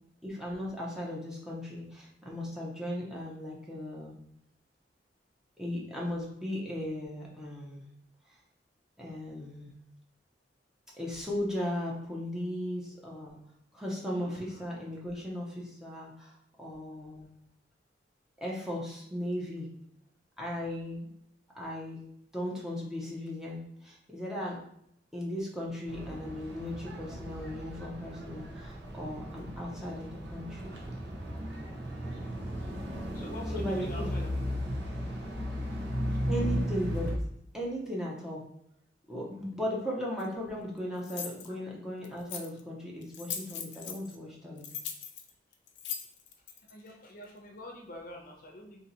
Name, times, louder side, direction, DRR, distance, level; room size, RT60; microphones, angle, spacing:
voice 1, 0.2-4.2 5.6-7.8 9.0-9.7 11.0-13.4 13.7-17.3 18.4-19.7 20.4-21.1 21.5-22.1 22.3-24.6 25.1-30.8 33.5-34.1 36.3-37.1 37.5-38.4 39.1-44.7, left 1 dB, 5° right, -4 dB, 0.7 m, -37 dB
voice 2, 14.1-14.7 33.1-34.3 36.1-36.3 46.0-46.1 46.7-48.8, left 1 dB, 50° left, 0 dB, 0.7 m, -46 dB
sound 1, 25.9-37.2, equal, 80° right, 0.9 m, -36 dB
sound 2, 40.2-40.3 41.0-41.5 42.0-42.6 43.0-44.1 44.6-46.7, left 8 dB, 85° left, 0.5 m, -39 dB
2.8 x 2.8 x 4.0 m, 0.73 s
head